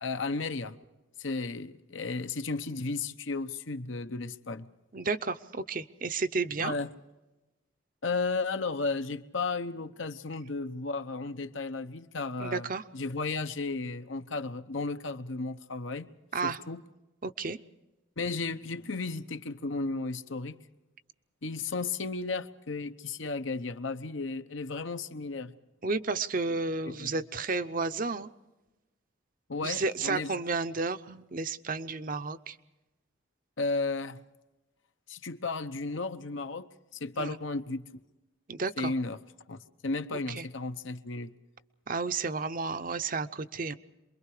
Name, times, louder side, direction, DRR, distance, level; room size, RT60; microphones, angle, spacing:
voice 1, 0.0-0.8 1.2-4.7 6.6-6.9 8.0-12.7 12.9-16.1 16.4-16.8 18.2-20.6 21.4-25.5 27.0-27.1 29.5-30.3 33.6-34.2 35.1-36.7 37.0-37.8 38.8-39.2 39.5-41.3, left 3 dB, 70° left, 0.9 m, -34 dB
voice 2, 4.9-6.7 12.4-12.8 16.3-16.6 17.2-17.6 25.8-28.3 29.6-32.6 37.2-37.4 38.5-38.9 40.3-40.5 41.9-43.7, right 4 dB, 40° right, 0.7 m, -32 dB
28.0 x 22.5 x 4.9 m
head